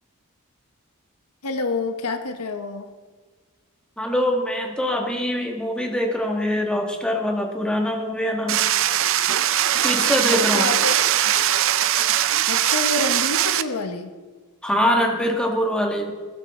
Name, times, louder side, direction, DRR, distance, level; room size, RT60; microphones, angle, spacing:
voice 1, 1.4-2.9 10.3-11.0 12.5-14.1, left 3 dB, 85° left, 7 dB, 1.2 m, -27 dB
voice 2, 4.0-8.6 9.8-10.7 14.6-16.1, equal, 5° left, 1 dB, 1.9 m, -23 dB
sound 1, 8.5-13.6, right 11 dB, 60° right, 0.6 m, -21 dB
21.0 x 12.5 x 3.8 m, 1.4 s
head